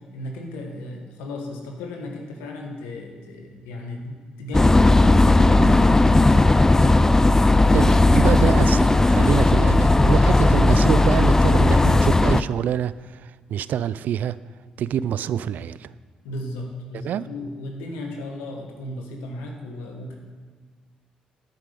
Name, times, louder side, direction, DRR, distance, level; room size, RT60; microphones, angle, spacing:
voice 1, 0.0-6.5 16.2-20.1, left 1 dB, 85° left, 2 dB, 1.7 m, -35 dB
sound 1, 4.5-12.4, left 2 dB, 15° left, 0.4 m, -16 dB
voice 2, 7.7-12.9 13.5-14.4 14.8-15.9 17.0-17.3, right 9 dB, 65° right, 17 dB, 0.4 m, -25 dB
10.5 x 8.9 x 5.3 m, 1.5 s
hypercardioid pair, 50°, 3 cm